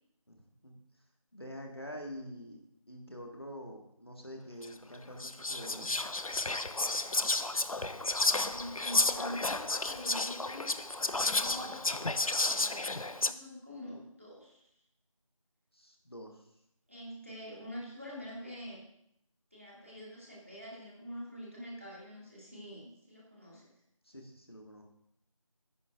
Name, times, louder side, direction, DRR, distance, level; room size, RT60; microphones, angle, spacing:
voice 1, 0.3-0.8 1.3-6.0 11.4-12.0 15.7-16.5 24.0-24.8, equal, 45° left, 1 dB, 1.6 m, -47 dB
Whispering, 4.6-4.7 5.2-13.3, left 2 dB, 80° left, 0.6 m, -32 dB
voice 2, 8.1-10.7 11.1-11.9 12.5-14.7 16.9-18.8 19.5-23.6, equal, 25° right, -4 dB, 2.2 m, -45 dB
15.0 x 10.0 x 2.5 m, 0.74 s
figure-of-eight pair, 180°, 18 cm